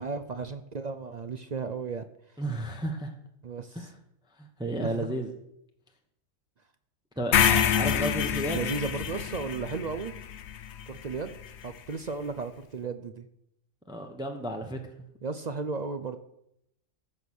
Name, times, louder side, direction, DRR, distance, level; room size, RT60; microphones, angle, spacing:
voice 1, 0.0-2.0 3.4-3.9 4.8-5.1 8.0-8.1 8.5-10.1 10.9-11.4 11.6-13.3 15.2-16.2, right 4 dB, 55° right, 10 dB, 0.4 m, -34 dB
voice 2, 2.4-3.1 3.7-3.9 4.4-5.3 7.2-8.6 13.9-14.8, right 1 dB, 5° right, 3 dB, 1.0 m, -32 dB
sound 1, 7.3-11.5, left 8 dB, 60° left, 0.9 m, -27 dB
14.5 x 6.7 x 6.4 m, 0.78 s
omnidirectional pair, 1.4 m